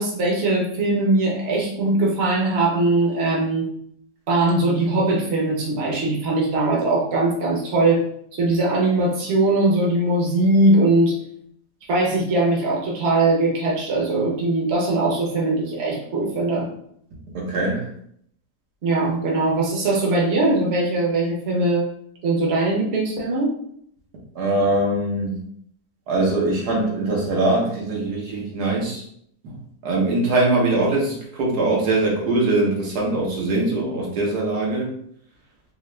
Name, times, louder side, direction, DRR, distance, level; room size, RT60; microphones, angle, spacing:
voice 1, 0.0-3.7 4.3-8.0 8.3-11.2 11.9-16.7 18.8-21.9 22.2-23.5, right 2 dB, 45° right, -3 dB, 1.1 m, -20 dB
voice 2, 17.3-17.9 24.3-25.4 26.1-29.0 29.4-29.6 29.8-34.9, right 2 dB, 75° right, -3 dB, 1.5 m, -22 dB
3.6 x 2.9 x 3.2 m, 0.67 s
omnidirectional pair, 1.7 m